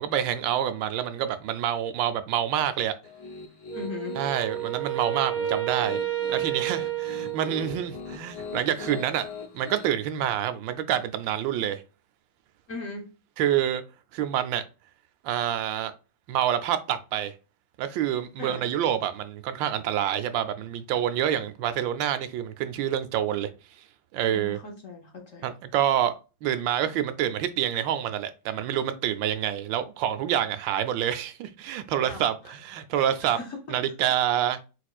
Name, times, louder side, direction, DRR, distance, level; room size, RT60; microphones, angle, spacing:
voice 1, 0.0-2.9 4.2-6.0 6.3-9.3 9.5-11.8 13.4-13.8 14.1-14.6 15.2-15.9 16.3-17.3 17.8-23.5 24.1-24.6 25.4-26.1 26.4-33.4 33.7-34.6, right 10 dB, 80° right, 1.3 m, -27 dB
Piano, 3.0-9.9, left 5 dB, 90° left, 1.5 m, -40 dB
voice 2, 3.7-4.2 12.7-13.1 18.4-18.7 24.3-25.5 32.0-32.6 32.9-33.8 34.0-34.1, left 4 dB, 55° left, 1.0 m, -39 dB
Wind instrument woodwind instrument, 3.7-8.1, right 15 dB, 55° right, 0.9 m, -31 dB
4.6 x 4.3 x 2.3 m
omnidirectional pair, 2.0 m